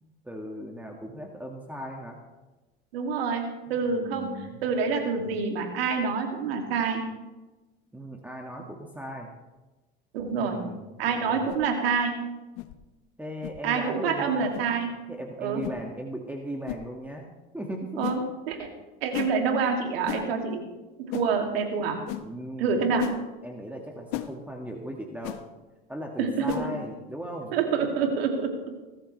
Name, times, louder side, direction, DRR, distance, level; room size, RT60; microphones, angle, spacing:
voice 1, 0.0-2.2 3.9-4.6 7.9-9.3 10.3-10.9 13.2-14.5 15.1-17.3 17.5-18.0 22.2-22.9 23.4-25.4 25.9-27.6, right 1 dB, 5° right, 1 dB, 2.0 m, -37 dB
voice 2, 2.9-7.0 10.1-10.6 11.0-12.2 13.6-14.9 15.4-15.6 18.0-18.7 19.0-20.7 21.0-22.0 22.6-23.1 26.2-26.7 27.5-28.6, right 5 dB, 85° right, 3 dB, 2.7 m, -27 dB
sound 1, 11.5-11.7 12.6-12.7 13.4-13.6 14.5-14.7 15.6-15.8 16.7-16.8 18.0-18.2 19.1-19.3 20.1-20.3 21.1-21.3 22.1-22.2 23.0-23.2 24.1-24.3 25.2-25.4 26.5-26.7, left 17 dB, 75° left, 1.1 m, -34 dB
20.0 x 13.5 x 3.4 m, 1.1 s
supercardioid pair, 95°, 30 cm